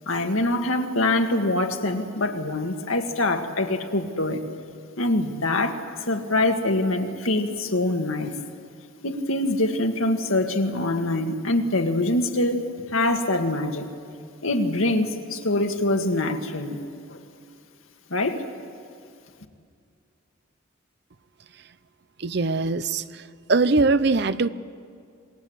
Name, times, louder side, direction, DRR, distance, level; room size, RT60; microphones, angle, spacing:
voice 1, 0.1-4.4 5.0-8.4 9.0-12.6 12.9-13.9 14.4-16.8 17.1-17.2 18.1-18.4, left 2 dB, 85° left, 4 dB, 2.0 m, -24 dB
voice 2, 22.2-23.0 23.5-24.5, right 3 dB, 55° right, 14 dB, 0.7 m, -21 dB
27.5 x 20.0 x 8.1 m, 2.3 s
head